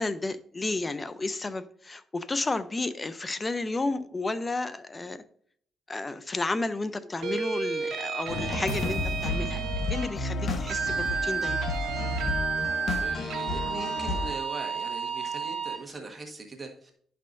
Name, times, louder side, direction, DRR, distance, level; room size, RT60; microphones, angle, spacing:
voice 1, 0.0-5.2 5.9-9.6 9.9-11.6, left 2 dB, 25° left, 0.6 m, -32 dB
sound 1, 7.2-10.1 10.7-15.8, right 6 dB, 75° right, 1.5 m, -32 dB
sound 2, 8.3-14.3, left 2 dB, 55° left, 1.0 m, -32 dB
voice 2, 13.0-16.9, right 3 dB, 30° right, 1.4 m, -41 dB
11.0 x 5.6 x 2.6 m
cardioid pair, 90°, 0 cm